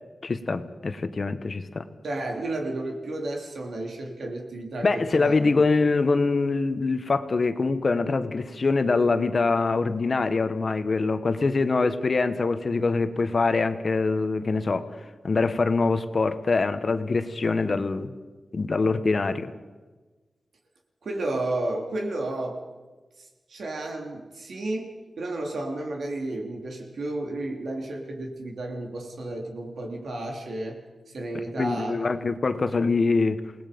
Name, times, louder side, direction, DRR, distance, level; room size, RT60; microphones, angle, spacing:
voice 1, 0.2-1.9 4.8-14.9 15.2-18.1 18.5-19.5 31.6-33.4, left 3 dB, 45° left, 10 dB, 1.2 m, -24 dB
voice 2, 2.0-5.6 21.0-22.6 23.2-30.8 31.1-32.1, right 2 dB, 75° right, 2 dB, 3.3 m, -32 dB
28.5 x 19.0 x 5.3 m, 1.3 s
wide cardioid pair, 130°, 0 cm